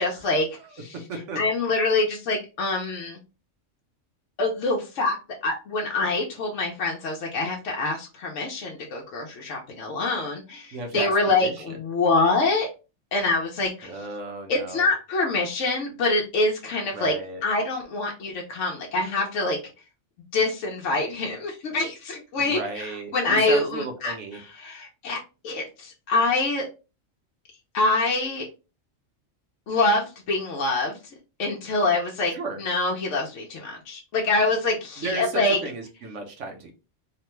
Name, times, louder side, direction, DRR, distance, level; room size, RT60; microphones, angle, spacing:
voice 1, 0.0-0.5 0.8-0.9 1.4-3.2 4.4-5.2 5.4-12.7 13.1-13.9 14.5-17.1 17.4-19.6 20.3-24.1 24.6-25.2 25.4-26.7 27.7-28.5 29.7-31.0 31.4-32.3 32.6-35.6, left 2 dB, 80° left, -1 dB, 1.0 m, -25 dB
voice 2, 0.6-1.4 10.7-11.8 13.8-14.9 16.9-17.4 22.4-24.4 32.3-32.6 35.0-36.7, right 3 dB, 75° right, 3 dB, 1.1 m, -34 dB
3.1 x 2.2 x 3.0 m, 0.31 s
omnidirectional pair, 1.3 m